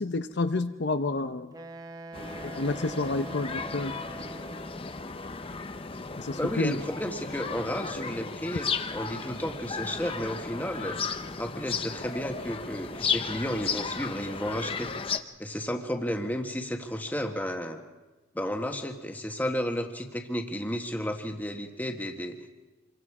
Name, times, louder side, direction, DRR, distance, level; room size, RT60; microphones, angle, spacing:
voice 1, 0.0-1.5 2.5-3.9 6.2-6.8, left 3 dB, 55° left, 9 dB, 0.7 m, -29 dB
Wind instrument woodwind instrument, 1.5-5.0, right 2 dB, 20° right, 0.8 m, -44 dB
sound 1, 2.1-15.2, left 5 dB, 25° left, 0.8 m, -35 dB
voice 2, 6.4-11.0 11.4-14.9 15.4-17.8 18.3-22.4, equal, 10° left, 4 dB, 1.5 m, -32 dB
27.0 x 23.5 x 4.9 m, 1.2 s
head